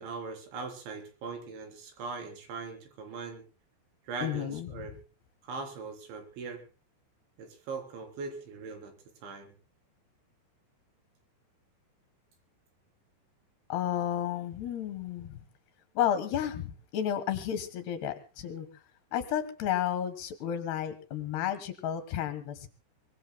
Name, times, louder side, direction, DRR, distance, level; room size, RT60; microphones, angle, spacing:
voice 1, 0.0-3.4 4.1-4.9 5.4-6.6 7.4-8.9 9.2-9.5, right 4 dB, 75° right, 5 dB, 5.9 m, -40 dB
voice 2, 4.2-4.7 13.7-15.4 15.9-18.7 19.1-22.7, left 10 dB, 65° left, 11 dB, 3.2 m, -32 dB
24.0 x 22.0 x 2.2 m, 0.35 s
omnidirectional pair, 5.5 m